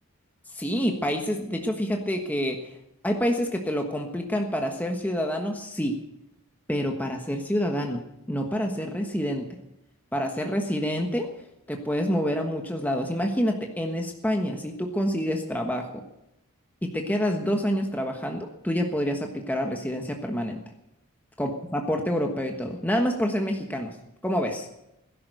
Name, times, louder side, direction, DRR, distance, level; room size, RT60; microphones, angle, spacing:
voice 1, 0.5-2.6 3.0-6.0 6.7-8.0 8.3-9.5 10.1-11.3 11.7-16.0 16.8-20.6 21.4-24.0 24.2-24.7, equal, 5° left, 3 dB, 1.3 m, -27 dB
17.5 x 11.0 x 6.6 m, 0.86 s
head